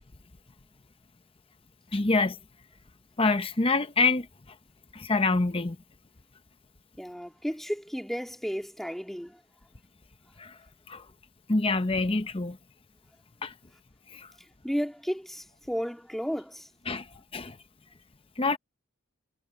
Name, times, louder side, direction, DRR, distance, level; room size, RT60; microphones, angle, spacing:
voice 1, 1.9-2.4 3.2-4.3 4.9-5.8 10.4-10.6 10.9-11.0 11.5-12.6 13.4-13.5 14.1-14.3 16.9-17.1 17.3-17.6 18.4-18.6, left 3 dB, 25° left, 0.9 m, -26 dB
voice 2, 7.0-9.4 14.6-16.7, equal, ahead, 3.5 m, -33 dB
head